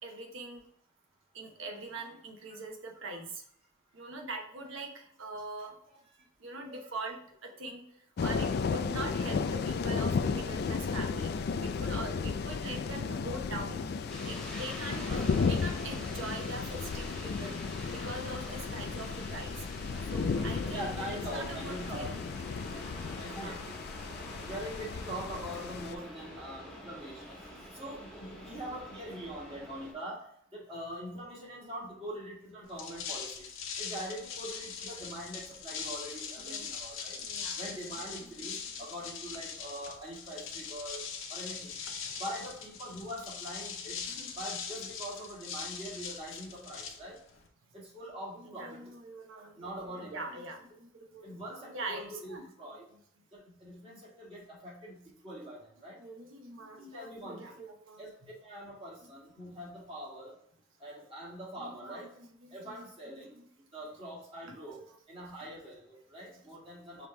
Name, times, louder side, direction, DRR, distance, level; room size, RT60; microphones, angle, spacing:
voice 1, 0.0-0.6 1.3-3.3 3.9-5.7 6.4-7.8 8.2-11.3 11.6-13.9 14.2-15.1 15.5-17.6 17.9-22.1 23.3-23.6 27.6-27.7 28.1-28.3 36.5-36.7 37.2-37.6 44.1-44.3 48.3-49.6 49.9-50.9 51.1-51.3 51.7-52.4 53.9-54.0 56.0-58.3 61.6-62.8 63.4-63.5 64.5-64.9, right 2 dB, 75° right, 3 dB, 0.9 m, -43 dB
sound 1, 8.2-25.9, left 5 dB, 50° left, 0.3 m, -34 dB
sound 2, 14.1-29.9, equal, 5° left, 0.9 m, -46 dB
voice 2, 20.7-22.1 23.2-23.8 24.4-27.4 27.7-30.3 30.5-33.5 33.8-37.2 37.6-41.0 41.3-41.7 42.2-44.1 44.4-47.2 47.7-48.8 49.6-50.4 51.2-52.8 53.3-56.0 56.8-57.6 58.0-58.1 58.4-60.3 60.8-62.1 62.5-63.4 63.7-64.8 65.1-67.1, equal, 30° right, -5 dB, 1.8 m, -43 dB
sound 3, 32.7-47.5, left 6 dB, 80° left, 0.7 m, -41 dB
5.2 x 3.0 x 3.2 m, 0.69 s
head